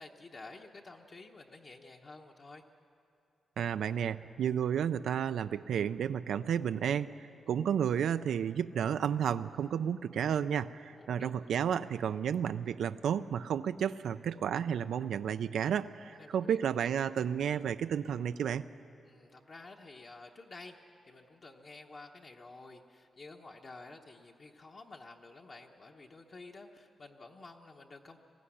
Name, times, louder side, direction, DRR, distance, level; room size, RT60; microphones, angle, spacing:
voice 1, 0.0-2.6 11.0-11.3 16.0-16.6 19.0-20.8 21.0-28.2, left 3 dB, 35° left, 1 dB, 0.9 m, -51 dB
voice 2, 3.6-18.6, right 8 dB, 90° right, 11 dB, 0.4 m, -32 dB
21.0 x 15.5 x 9.9 m, 2.7 s
wide cardioid pair, 165°, 0 cm